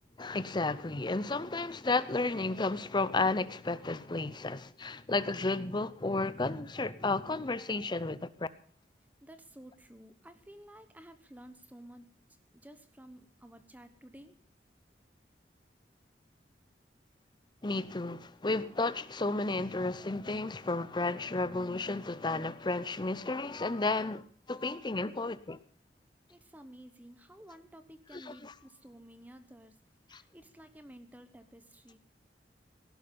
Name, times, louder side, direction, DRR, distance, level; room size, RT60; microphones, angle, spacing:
voice 1, 0.2-8.5 17.6-25.6 28.1-28.5 30.1-30.2, left 3 dB, 25° left, 0.7 m, -32 dB
voice 2, 9.2-12.1 12.5-14.3 26.3-29.7 30.1-32.0, right 1 dB, 10° right, 1.0 m, -53 dB
18.0 x 11.0 x 5.4 m
head